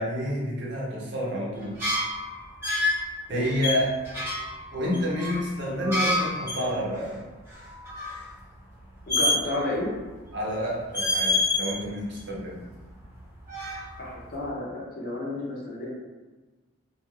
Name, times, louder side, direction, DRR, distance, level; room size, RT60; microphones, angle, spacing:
voice 1, 0.0-1.8 3.3-3.9 4.7-7.2 10.3-12.6, equal, 55° right, -4 dB, 0.7 m, -29 dB
sound 1, 1.6-3.1 3.6-6.7 7.0-7.1 7.4-8.2 9.1-9.8 10.1-10.6 10.9-11.8 12.1-13.2 13.4-14.2, left 2 dB, 10° right, 0.9 m, -28 dB
voice 2, 9.1-9.9 14.0-15.9, left 2 dB, 45° left, -5 dB, 0.7 m, -32 dB
2.4 x 2.2 x 3.1 m, 1.2 s
head